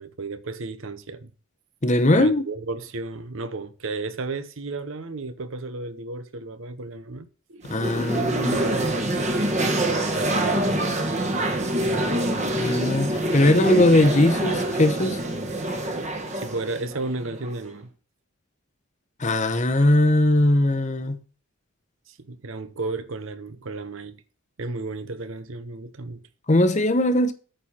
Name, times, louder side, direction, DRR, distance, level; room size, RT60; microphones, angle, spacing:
voice 1, 0.0-1.3 2.1-7.7 8.1-9.0 9.6-10.8 16.3-17.9 22.1-24.2 24.6-26.2, right 3 dB, 65° right, 0.9 m, -34 dB
voice 2, 1.8-2.4 7.6-8.6 12.6-15.2 19.2-21.2 26.5-27.3, left 1 dB, 35° left, 0.9 m, -20 dB
sound 1, 7.6-17.6, right 1 dB, 30° right, 1.5 m, -25 dB
9.0 x 4.5 x 7.1 m
head